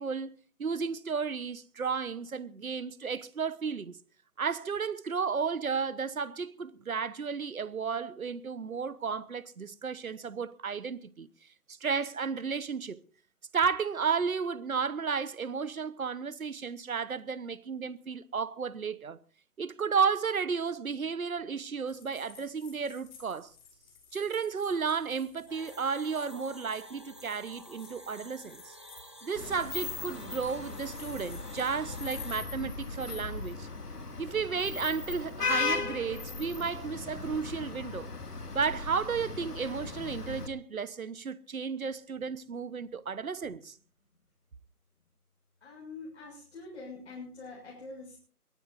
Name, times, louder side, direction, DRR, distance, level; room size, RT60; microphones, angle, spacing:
voice 1, 0.0-4.0 4.4-11.3 11.7-13.0 13.5-19.2 19.6-23.5 24.1-28.8 29.2-33.7 34.2-38.1 38.5-43.8, right 5 dB, 65° right, 1.2 m, -33 dB
sound 1, 21.9-31.7, left 5 dB, 30° left, 6.6 m, -56 dB
sound 2, 25.5-32.4, equal, 20° right, 0.6 m, -51 dB
Vehicle horn car horn honking / Traffic noise roadway noise, 29.4-40.5, left 4 dB, 75° left, 2.3 m, -37 dB
voice 2, 45.6-48.2, left 3 dB, 45° left, 7.0 m, -45 dB
22.5 x 17.5 x 2.6 m
figure-of-eight pair, 150°, 46 cm